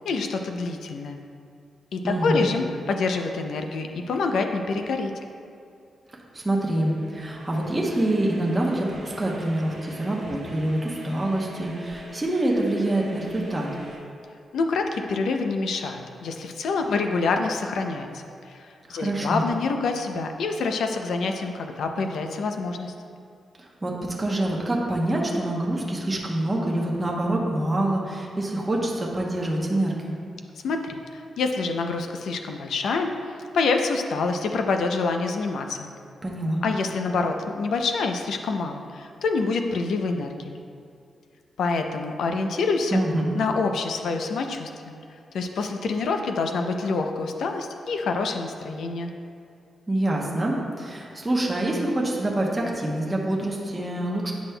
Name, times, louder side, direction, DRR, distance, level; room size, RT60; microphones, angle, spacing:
voice 1, 0.0-1.2 1.9-5.1 14.5-22.9 30.6-35.9 36.6-40.6 41.6-43.0 43.3-45.0 45.3-49.1, left 4 dB, 80° left, 5 dB, 0.5 m, -27 dB
voice 2, 2.0-2.4 6.3-13.7 18.9-19.5 23.6-30.1 36.2-36.6 42.9-43.3 49.9-54.3, right 1 dB, 15° right, -3 dB, 0.8 m, -26 dB
sound 1, 6.3-14.0, right 1 dB, 65° right, 1.0 m, -43 dB
9.2 x 6.0 x 2.2 m, 2.4 s
wide cardioid pair, 145°, 0 cm